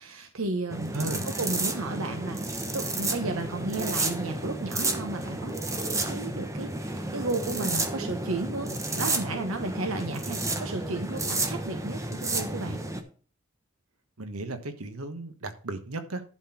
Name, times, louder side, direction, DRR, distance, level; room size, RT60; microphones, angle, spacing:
voice 1, 0.0-1.0 1.4-5.6 6.0-12.8, right 2 dB, 70° right, 6 dB, 1.1 m, -33 dB
sound 1, 0.7-13.0, right 2 dB, 15° right, 1.1 m, -31 dB
voice 2, 0.9-1.2 14.2-16.2, right 2 dB, 90° right, 8 dB, 1.3 m, -35 dB
11.0 x 4.4 x 5.8 m, 0.40 s
head